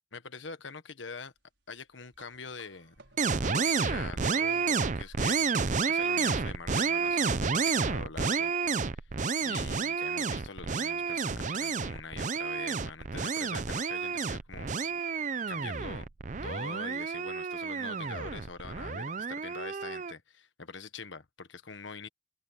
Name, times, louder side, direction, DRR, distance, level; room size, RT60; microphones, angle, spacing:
voice 1, 0.1-1.3 1.7-2.9 3.4-5.4 5.8-8.5 8.8-9.0 9.4-14.7 15.5-16.1 16.4-22.1, left 4 dB, 80° left, 1.4 m, -44 dB
sound 1, 2.1-6.9, right 3 dB, 75° right, 5.2 m, -61 dB
sound 2, 3.2-20.1, right 5 dB, 40° right, 0.6 m, -30 dB
open air
head